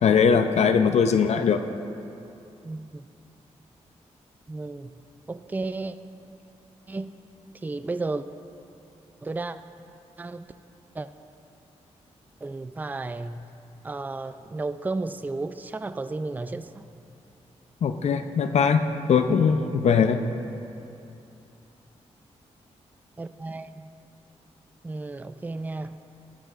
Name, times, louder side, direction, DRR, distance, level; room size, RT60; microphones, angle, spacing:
voice 1, 0.0-1.6 17.8-18.8 19.1-20.2, left 6 dB, 70° left, 8 dB, 0.5 m, -20 dB
voice 2, 2.6-3.1 4.5-4.9 5.3-6.0 6.9-7.2 7.6-8.3 9.2-9.6 10.2-10.5 10.9-11.1 12.4-13.5 13.8-16.9 23.2-23.9 24.8-26.0, right 3 dB, 15° right, 11 dB, 0.3 m, -33 dB
13.5 x 13.5 x 2.5 m, 2.7 s
cardioid pair, 85°, 12 cm